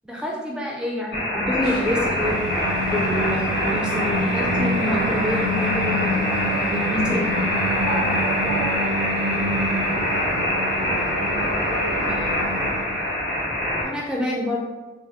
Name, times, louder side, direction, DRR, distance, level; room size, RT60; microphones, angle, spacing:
voice 1, 0.0-2.3 2.9-6.2 6.7-7.3 12.1-12.2 13.8-14.6, left 1 dB, 5° right, -2 dB, 0.3 m, -27 dB
sound 1, 1.1-13.8, left 1 dB, 50° left, 1.1 m, -24 dB
sound 2, 1.6-8.7, equal, 25° left, 0.7 m, -38 dB
Singing, 1.9-13.0, equal, 70° right, 0.4 m, -28 dB
voice 2, 7.7-9.6 11.1-12.6, equal, 70° left, -4 dB, 0.9 m, -34 dB
2.6 x 2.5 x 4.0 m, 1.2 s
head